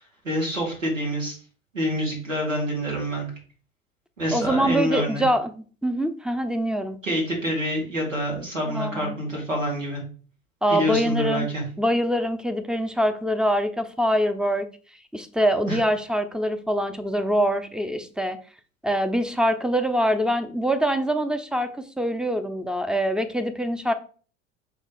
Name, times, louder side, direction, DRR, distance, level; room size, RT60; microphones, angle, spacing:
voice 1, 0.2-1.4 1.7-3.3 4.2-5.3 7.0-10.0 10.7-11.6 15.6-15.8, equal, 85° right, -2 dB, 2.9 m, -27 dB
voice 2, 4.3-7.0 8.7-9.2 10.6-11.5 11.8-14.7 15.1-18.4 18.8-23.9, equal, ahead, 9 dB, 0.7 m, -24 dB
5.4 x 3.6 x 5.0 m, 0.41 s
figure-of-eight pair, 75°, 38 cm